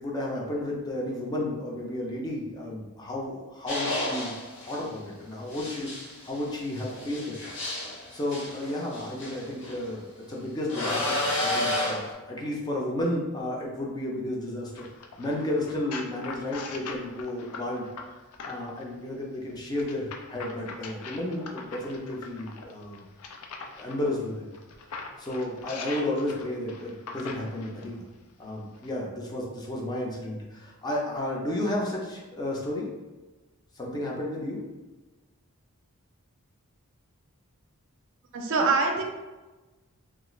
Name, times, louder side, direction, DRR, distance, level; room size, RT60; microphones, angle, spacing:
voice 1, 0.0-4.3 4.6-5.9 6.2-7.4 8.1-14.9 15.2-17.9 18.4-23.0 23.8-24.4 25.2-28.0 28.4-32.9 33.7-34.6, left 1 dB, 20° left, -3 dB, 0.5 m, -32 dB
sound 1, 3.7-4.8 5.5-9.8 10.7-12.1, left 1 dB, 55° left, 0.8 m, -31 dB
sound 2, 14.8-18.8 19.8-24.0 24.5-27.9 28.7-28.9, left 4 dB, 85° left, 0.4 m, -41 dB
voice 2, 38.3-39.0, right 4 dB, 55° right, 3 dB, 0.4 m, -24 dB
3.0 x 2.4 x 3.0 m, 1.2 s
head